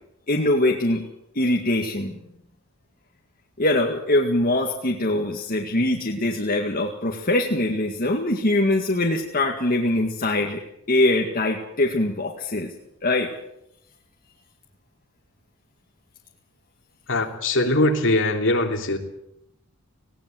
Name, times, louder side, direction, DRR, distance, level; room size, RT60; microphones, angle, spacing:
voice 1, 0.3-1.1 1.4-2.1 3.6-10.6 10.9-12.7 13.0-13.3, left 1 dB, 40° left, 0 dB, 2.0 m, -22 dB
voice 2, 17.1-19.0, left 2 dB, 60° left, 3 dB, 3.0 m, -21 dB
19.0 x 17.5 x 7.8 m, 0.80 s
head